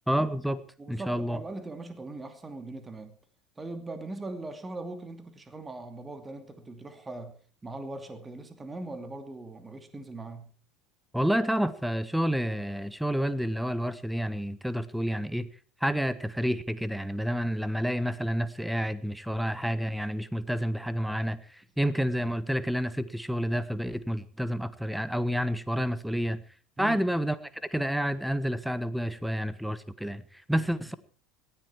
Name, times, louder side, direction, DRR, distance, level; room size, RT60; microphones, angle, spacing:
voice 1, 0.1-0.6 0.9-1.4 11.1-15.5 15.8-26.4 26.8-27.4 27.7-30.9, equal, ahead, 15 dB, 1.2 m, -29 dB
voice 2, 0.8-3.2 3.6-10.5 26.8-27.0 30.5-30.7, right 2 dB, 15° right, 8 dB, 2.7 m, -40 dB
18.0 x 13.0 x 4.6 m, 0.42 s
figure-of-eight pair, 70°, 0 cm